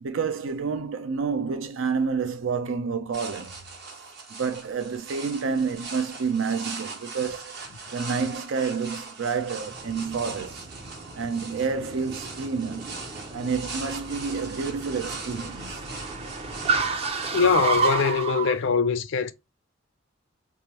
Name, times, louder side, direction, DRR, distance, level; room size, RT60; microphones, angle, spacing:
voice 1, 0.0-3.6 4.3-7.5 7.9-10.6 11.2-12.9 13.3-15.8, right 5 dB, 75° right, 0.5 m, -29 dB
sound 1, 3.1-17.3, right 4 dB, 55° right, 1.0 m, -40 dB
Car, 9.6-18.6, right 4 dB, 30° right, 0.5 m, -31 dB
voice 2, 17.3-19.3, left 6 dB, 65° left, 0.4 m, -22 dB
3.4 x 2.5 x 2.9 m
head